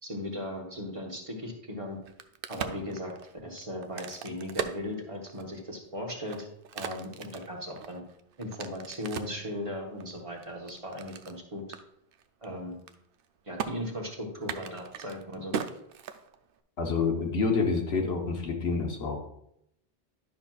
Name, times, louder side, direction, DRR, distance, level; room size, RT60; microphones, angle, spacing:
voice 1, 0.0-2.0 2.5-3.1 3.4-6.5 6.7-8.0 8.4-11.6 12.4-12.8 13.5-15.5, left 1 dB, 35° right, 0 dB, 1.2 m, -37 dB
Crack, 1.9-5.6 6.1-9.4 10.0-11.4 11.7-11.8 12.1-12.4 12.7-13.2 13.6-13.7 14.4-16.6, right 7 dB, 70° right, 0.7 m, -38 dB
voice 2, 16.8-19.3, left 4 dB, 90° left, 1 dB, 1.4 m, -28 dB
11.0 x 5.9 x 2.4 m, 0.76 s
omnidirectional pair, 1.0 m